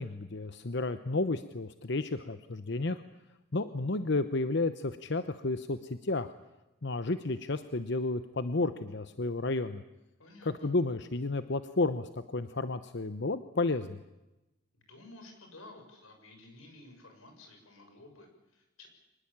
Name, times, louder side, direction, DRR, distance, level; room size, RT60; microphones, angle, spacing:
voice 1, 0.0-3.0 3.5-6.3 6.8-9.8 10.5-14.0, left 2 dB, 55° left, 11 dB, 0.9 m, -32 dB
voice 2, 10.2-10.7 14.7-18.9, left 2 dB, 90° left, 4 dB, 6.9 m, -53 dB
24.5 x 20.5 x 8.9 m, 0.99 s
head